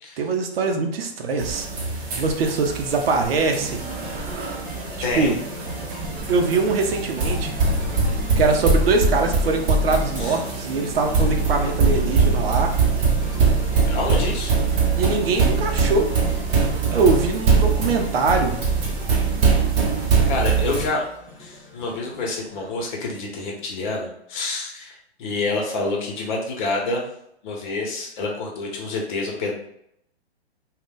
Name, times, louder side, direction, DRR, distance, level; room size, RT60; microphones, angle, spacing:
voice 1, 0.2-1.7 2.1-3.8 5.1-5.3 6.3-7.5 8.4-12.7 15.0-16.1 16.5-18.6, right 4 dB, 60° right, 3 dB, 0.7 m, -22 dB
sound 1, 1.4-20.9, right 4 dB, 30° right, 0.8 m, -22 dB
sound 2, 3.6-22.9, equal, 10° right, 0.3 m, -38 dB
voice 2, 5.0-5.4 8.6-8.7 10.2-10.4 13.9-14.5 20.3-21.0 21.4-27.0 27.4-29.5, left 3 dB, 45° left, -1 dB, 1.0 m, -27 dB
2.5 x 2.3 x 3.6 m, 0.74 s
hypercardioid pair, 125°, 33 cm